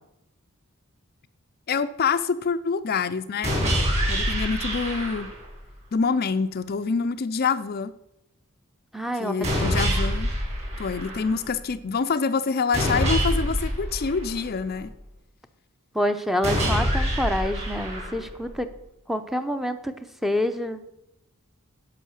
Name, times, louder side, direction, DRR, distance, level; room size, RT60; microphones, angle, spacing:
voice 1, 1.7-3.5 4.1-5.3 5.9-7.9 9.2-10.3 10.8-14.9, left 5 dB, 45° left, 12 dB, 0.5 m, -26 dB
sound 1, 3.4-5.5 9.4-11.5 12.7-14.8 16.4-18.5, equal, 30° right, 4.5 m, -26 dB
voice 2, 8.9-9.8 15.9-18.7 19.1-19.9 20.2-20.8, equal, ahead, 9 dB, 0.7 m, -27 dB
11.0 x 6.8 x 6.4 m, 0.83 s
head